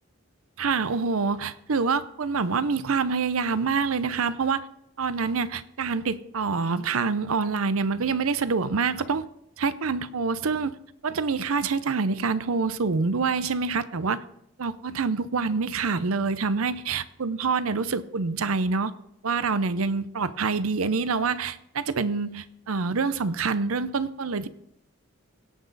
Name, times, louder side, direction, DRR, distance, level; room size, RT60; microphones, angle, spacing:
voice 1, 0.6-4.7 5.0-9.2 9.6-10.7 11.0-14.2 14.6-18.9 19.2-24.5, right 4 dB, 85° right, 14 dB, 0.6 m, -26 dB
17.5 x 6.3 x 4.0 m, 0.75 s
head